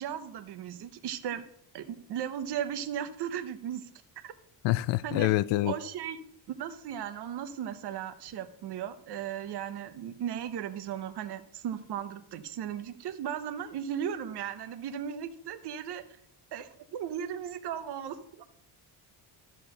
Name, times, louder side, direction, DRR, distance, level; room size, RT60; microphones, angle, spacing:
voice 1, 0.0-1.4 1.7-3.9 4.2-4.3 5.0-5.3 5.6-16.0 16.5-18.4, right 9 dB, 65° right, 1.0 m, -36 dB
voice 2, 4.6-5.7, left 16 dB, 80° left, 0.5 m, -26 dB
12.5 x 4.5 x 6.5 m
cardioid pair, 155°, 43 cm